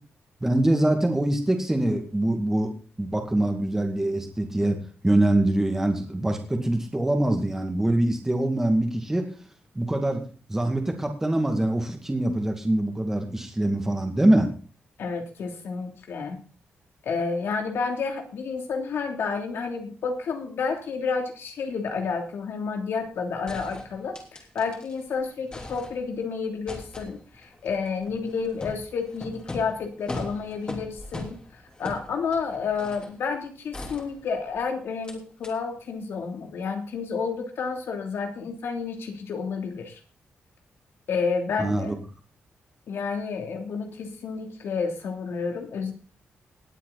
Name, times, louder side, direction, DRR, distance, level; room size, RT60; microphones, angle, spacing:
voice 1, 0.4-2.7 3.0-4.8 5.0-9.3 9.7-10.2 10.5-14.5 41.6-41.9, right 1 dB, 10° right, 3 dB, 2.3 m, -24 dB
voice 2, 15.0-16.4 17.0-40.0 41.1-41.9 42.9-45.9, left 5 dB, 75° left, 4 dB, 3.0 m, -30 dB
sound 1, 23.0-23.1 23.5-25.0 25.3-26.3 26.7-33.2 33.7-34.6 35.0-35.2 35.4-35.5, left 2 dB, 20° left, 3.2 m, -40 dB
19.0 x 8.4 x 4.1 m, 0.38 s
wide cardioid pair, 130°, 4 cm